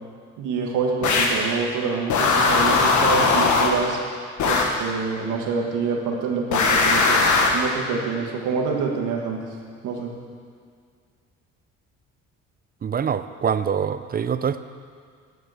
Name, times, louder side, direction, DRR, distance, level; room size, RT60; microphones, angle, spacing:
voice 1, 0.4-4.0 4.5-7.2 7.5-9.4 9.8-10.1, right 5 dB, 85° right, 0 dB, 1.5 m, -26 dB
sound 1, 1.0-1.5 2.1-3.9 4.4-4.8 6.5-7.7, left 4 dB, 75° left, 1.4 m, -19 dB
voice 2, 12.8-14.6, right 7 dB, 30° right, 12 dB, 0.5 m, -24 dB
9.3 x 8.0 x 6.3 m, 2.1 s
cardioid pair, 90°, 30 cm